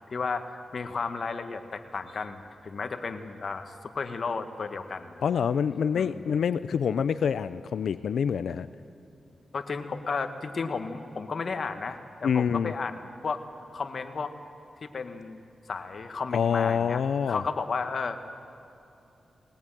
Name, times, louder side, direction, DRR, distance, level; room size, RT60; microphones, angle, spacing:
voice 1, 0.1-5.2 5.9-6.1 9.5-13.4 13.7-14.3 14.8-15.4 15.7-17.0 17.3-18.2, left 4 dB, 60° left, 7 dB, 1.8 m, -33 dB
voice 2, 5.2-8.7 12.2-12.7 16.3-17.4, left 7 dB, 85° left, 14 dB, 0.6 m, -26 dB
21.0 x 19.5 x 9.3 m, 2.8 s
cardioid pair, 75°, 0 cm